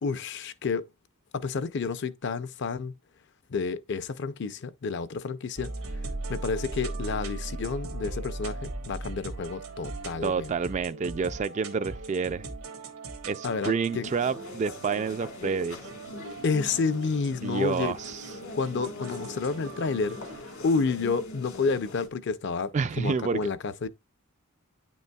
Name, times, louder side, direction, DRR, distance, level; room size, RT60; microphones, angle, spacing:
voice 1, 0.0-0.9 1.3-2.9 3.5-5.7 6.3-10.5 13.4-14.1 16.4-17.9 18.5-22.7 23.0-23.9, left 4 dB, 55° left, 0.5 m, -30 dB
sound 1, 5.6-21.0, right 2 dB, 85° right, 1.4 m, -39 dB
voice 2, 10.2-12.5 13.3-15.8 17.4-18.2 22.7-23.4, right 5 dB, 35° right, 0.3 m, -29 dB
sound 2, 14.0-22.1, left 2 dB, 70° left, 1.6 m, -42 dB
9.3 x 5.3 x 2.3 m
head